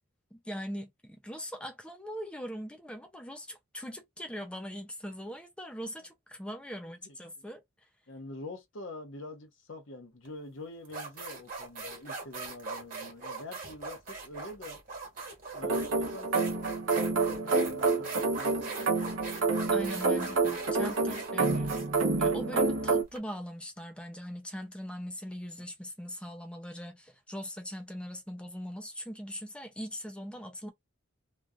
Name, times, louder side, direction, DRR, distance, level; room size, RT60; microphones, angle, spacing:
voice 1, 0.3-7.6 19.7-21.7 22.2-30.7, equal, 5° left, 0.5 m, -41 dB
voice 2, 7.0-7.4 8.1-14.8 15.5-19.2, left 2 dB, 65° left, 1.0 m, -46 dB
sound 1, 10.3-10.4 10.9-23.2, right 4 dB, 40° right, 1.4 m, -41 dB
sound 2, 15.6-23.0, right 3 dB, 70° right, 0.8 m, -28 dB
3.1 x 2.4 x 2.4 m
head